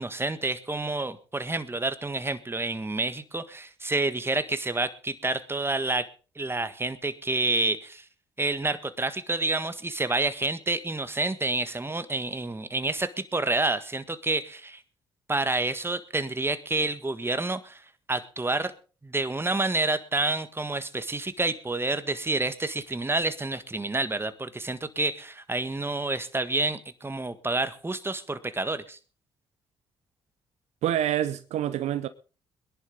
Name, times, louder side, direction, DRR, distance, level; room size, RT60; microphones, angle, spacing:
voice 1, 0.0-6.1 6.3-8.0 8.4-14.8 15.3-17.8 18.1-18.7 19.0-29.0, right 2 dB, 20° right, 1.6 m, -29 dB
voice 2, 30.8-32.1, right 11 dB, 65° right, 0.6 m, -27 dB
21.5 x 11.0 x 3.9 m
hypercardioid pair, 45°, 12 cm